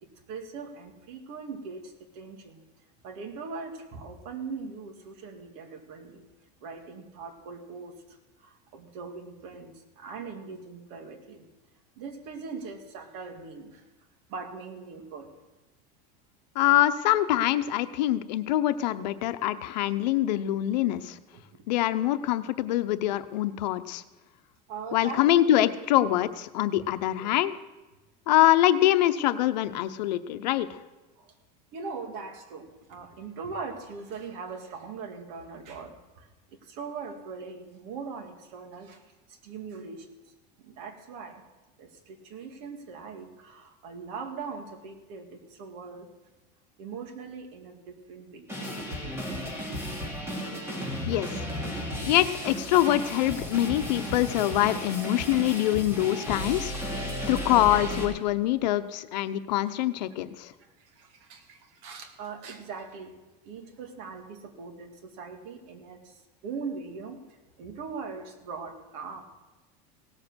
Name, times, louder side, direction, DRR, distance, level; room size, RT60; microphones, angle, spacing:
voice 1, 0.0-2.6 3.0-6.2 6.6-7.9 8.4-11.4 12.0-13.8 14.3-15.3 16.6-16.7 21.3-21.4 24.7-25.2 27.2-27.3 31.2-31.3 31.7-36.3 36.7-39.0 39.4-40.1 40.6-41.4 41.8-46.1 46.8-48.5 57.7-57.8 60.1-60.2 60.8-63.1 63.4-66.2 66.4-67.2 67.6-69.2, right 5 dB, 60° right, 5 dB, 2.1 m, -40 dB
voice 2, 16.6-21.2 21.7-24.0 24.9-27.5 28.3-30.7 51.1-51.3 52.0-56.7 57.3-60.5, left 14 dB, 90° left, 11 dB, 0.8 m, -24 dB
sound 1, 48.5-58.1, equal, 10° right, 3.0 m, -34 dB
17.0 x 7.4 x 6.2 m, 1.1 s
supercardioid pair, 150°, 21 cm